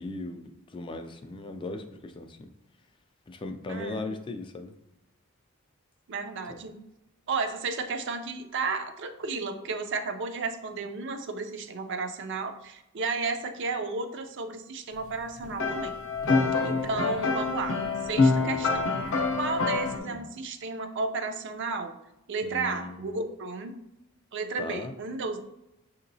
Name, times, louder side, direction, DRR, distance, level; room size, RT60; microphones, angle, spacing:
voice 1, 0.0-2.5 3.3-4.7 6.5-6.6 16.2-17.1 18.4-18.9 19.9-20.2 22.4-23.0 24.6-24.9, left 2 dB, 25° left, 7 dB, 0.3 m, -38 dB
voice 2, 3.7-4.1 6.1-6.8 7.3-15.9 16.6-18.8 19.4-21.9 22.3-23.7 24.3-25.4, right 4 dB, 60° right, 6 dB, 0.5 m, -33 dB
sound 1, 15.4-20.0, left 3 dB, 70° left, 0.6 m, -26 dB
6.6 x 2.8 x 2.6 m, 0.89 s
head